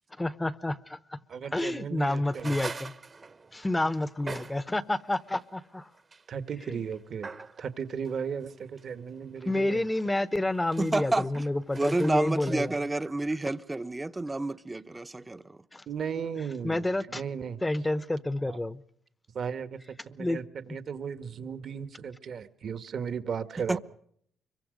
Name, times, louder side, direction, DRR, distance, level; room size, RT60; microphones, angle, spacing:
voice 1, 0.2-1.2 1.5-2.9 3.5-5.9 6.6-6.8 9.5-12.8 15.7-15.8 16.6-17.2 17.6-18.8 20.2-20.4 20.7-20.8, left 1 dB, 15° left, 1.0 m, -29 dB
voice 2, 1.3-2.5 6.3-7.3 7.6-9.9 12.4-12.9 15.9-16.8 17.1-17.6 18.5-18.6 19.3-19.8 20.1-23.8, right 7 dB, 55° right, 1.5 m, -36 dB
sound 1, 2.3-4.7 5.3-5.4 5.9-6.2 6.6-6.8 7.2-7.7 8.0-9.4 10.0-10.1 10.3-12.1, right 4 dB, 35° right, 1.1 m, -43 dB
voice 3, 10.8-11.4 11.7-15.6 23.7-23.8, right 2 dB, 15° right, 0.9 m, -29 dB
25.0 x 23.0 x 5.2 m
cardioid pair, 90°, 0 cm